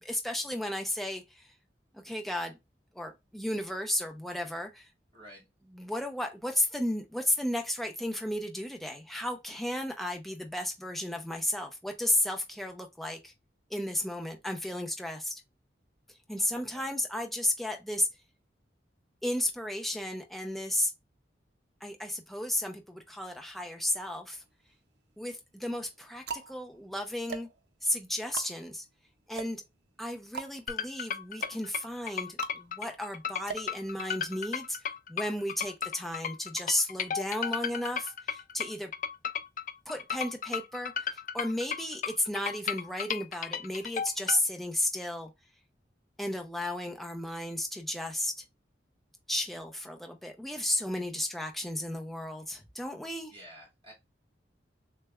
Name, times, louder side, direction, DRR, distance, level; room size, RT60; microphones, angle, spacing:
voice 1, 0.0-1.5 1.9-2.6 2.9-4.9 5.7-13.3 13.7-15.4 16.3-18.1 19.2-20.9 21.8-24.4 25.2-27.5 27.8-28.9 29.3-29.6 30.0-34.8 35.1-38.9 39.9-45.3 46.2-48.4 49.3-53.3, left 1 dB, ahead, 0.6 m, -33 dB
voice 2, 5.1-5.4 16.5-16.8 53.3-53.9, equal, 30° right, 2.0 m, -50 dB
sound 1, 24.3-25.0 25.7-34.5, right 5 dB, 65° right, 0.6 m, -43 dB
sound 2, 30.7-44.4, left 7 dB, 45° left, 0.4 m, -34 dB
6.5 x 2.2 x 2.3 m
head